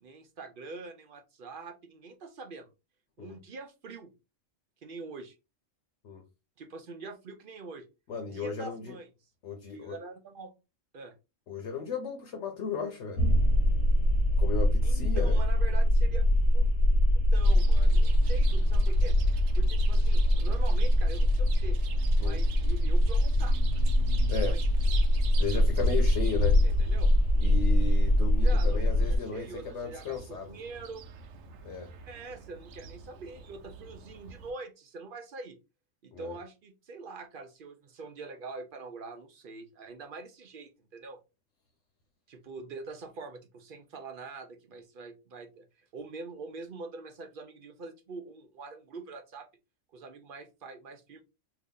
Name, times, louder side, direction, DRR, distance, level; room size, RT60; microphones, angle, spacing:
voice 1, 0.0-2.7 3.2-4.1 4.8-5.4 6.6-7.9 8.3-9.1 9.7-10.5 10.9-11.1 14.8-16.7 17.3-19.2 19.6-21.8 22.2-23.6 24.3-24.6 26.6-27.1 28.4-31.0 32.1-35.6 36.0-41.2 42.3-45.7 45.9-49.5 49.9-51.2, right 3 dB, 55° right, 0.6 m, -44 dB
voice 2, 8.1-9.0 9.4-10.0 11.5-13.2 14.4-15.4 22.2-22.4 24.3-24.6 25.4-26.6 27.4-30.5 31.6-31.9 36.1-36.3, left 5 dB, 70° left, 1.0 m, -35 dB
sound 1, 13.2-29.2, left 1 dB, 85° left, 1.3 m, -23 dB
Chirp tweet, 17.3-34.5, right 5 dB, 85° right, 1.0 m, -47 dB
2.8 x 2.6 x 3.6 m
omnidirectional pair, 1.3 m